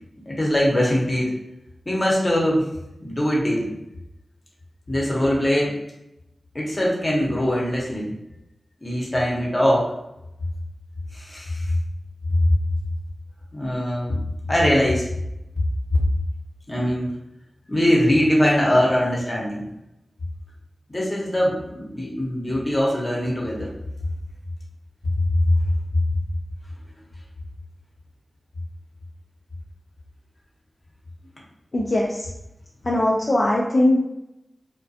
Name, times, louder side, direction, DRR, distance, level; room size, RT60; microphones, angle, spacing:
voice 1, 0.3-1.3 1.9-2.7 3.0-3.7 4.9-5.7 6.5-8.1 8.8-9.9 11.1-11.7 12.3-12.4 13.5-14.2 14.5-15.1 16.7-17.1 17.7-19.6 20.9-23.7 25.1-25.3 25.9-26.0, equal, 25° left, -4 dB, 0.8 m, -22 dB
voice 2, 31.7-32.3 32.8-34.0, left 1 dB, 45° left, -3 dB, 0.3 m, -20 dB
2.3 x 2.1 x 2.7 m, 0.88 s
wide cardioid pair, 80°, 0 cm